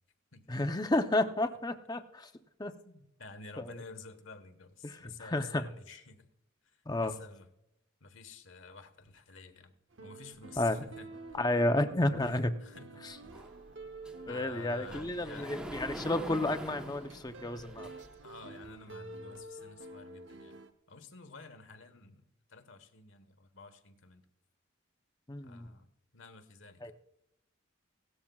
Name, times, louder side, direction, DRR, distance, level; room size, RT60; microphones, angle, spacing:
voice 1, 0.5-2.3 2.6-2.7 3.6-3.8 4.8-5.7 6.9-7.2 10.6-10.8 11.3-12.5 13.0-13.2 14.3-17.9 25.3-25.7 26.8-26.9, left 1 dB, 20° left, 8 dB, 0.7 m, -31 dB
voice 2, 2.8-6.3 6.6-7.4 8.0-9.7 10.0-11.1 12.2-13.0 14.3-15.5 18.2-20.6 20.9-24.2 25.4-26.9, left 4 dB, 70° left, 10 dB, 1.3 m, -51 dB
sound 1, 9.9-20.7, right 2 dB, 65° right, 1.0 m, -49 dB
Sliding door, 13.3-18.3, equal, 5° right, 1.1 m, -45 dB
17.5 x 13.0 x 2.4 m, 0.84 s
head